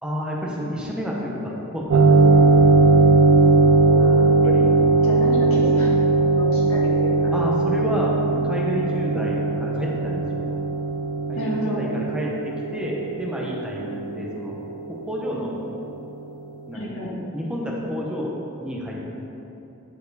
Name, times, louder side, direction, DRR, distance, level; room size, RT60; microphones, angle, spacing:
voice 1, 0.0-2.8 4.2-4.7 7.3-10.6 11.3-14.6 14.9-15.6 16.7-16.8 17.3-18.9, equal, 5° right, -4 dB, 0.9 m, -30 dB
sound 1, 1.9-15.0, right 3 dB, 65° right, 0.4 m, -19 dB
voice 2, 4.0-4.6 5.0-6.0 6.3-7.3 11.4-11.8 16.7-17.2, equal, 65° left, -5 dB, 1.7 m, -30 dB
9.6 x 4.6 x 4.0 m, 2.9 s
head